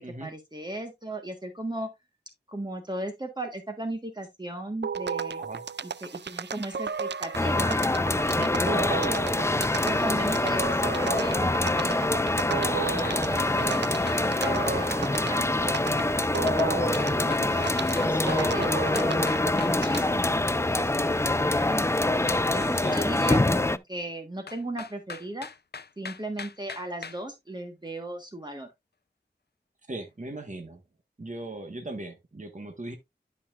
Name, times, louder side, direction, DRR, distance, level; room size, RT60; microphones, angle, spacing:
voice 1, 0.2-1.9 2.5-5.4 6.0-8.9 9.8-13.8 14.3-21.9 22.5-25.5 26.0-28.7, right 1 dB, 25° right, 1.4 m, -37 dB
sound 1, 4.8-20.2, right 6 dB, 85° right, 0.4 m, -34 dB
sound 2, 7.3-23.8, left 2 dB, 15° left, 0.4 m, -25 dB
sound 3, 13.0-14.6 17.0-20.1 22.3-23.4 24.5-27.2, left 5 dB, 70° left, 0.6 m, -40 dB
voice 2, 29.9-30.8 31.2-33.0, right 2 dB, 45° right, 1.4 m, -38 dB
12.0 x 5.6 x 2.5 m
wide cardioid pair, 50°, 18 cm